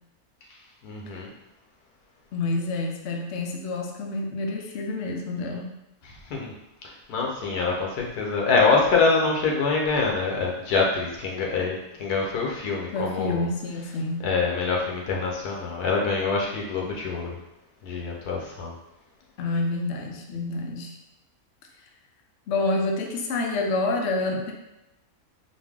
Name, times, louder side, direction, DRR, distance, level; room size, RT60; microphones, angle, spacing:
voice 1, 0.8-1.3 6.3-6.5 6.8-13.5 14.2-17.4 17.8-18.7, left 4 dB, 85° left, -2 dB, 1.4 m, -25 dB
voice 2, 2.3-5.7 12.9-14.3 19.4-20.9 22.5-24.5, left 2 dB, 60° left, 1 dB, 0.8 m, -28 dB
4.1 x 2.6 x 3.6 m, 0.90 s
omnidirectional pair, 1.6 m